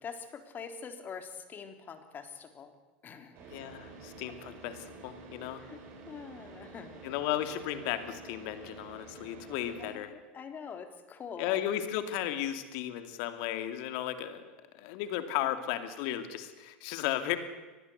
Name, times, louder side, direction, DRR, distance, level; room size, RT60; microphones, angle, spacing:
voice 1, 0.0-2.7 3.0-3.5 5.6-5.8 6.1-7.0 9.8-11.6, left 6 dB, 35° left, 7 dB, 3.6 m, -44 dB
Car / Idling, 3.3-9.9, right 3 dB, 50° right, 7.8 m, -49 dB
voice 2, 3.5-5.7 7.0-10.1 11.4-14.5 14.7-17.4, left 12 dB, 60° left, 9 dB, 2.7 m, -35 dB
23.5 x 20.0 x 8.2 m, 1.2 s
hypercardioid pair, 80°, 6 cm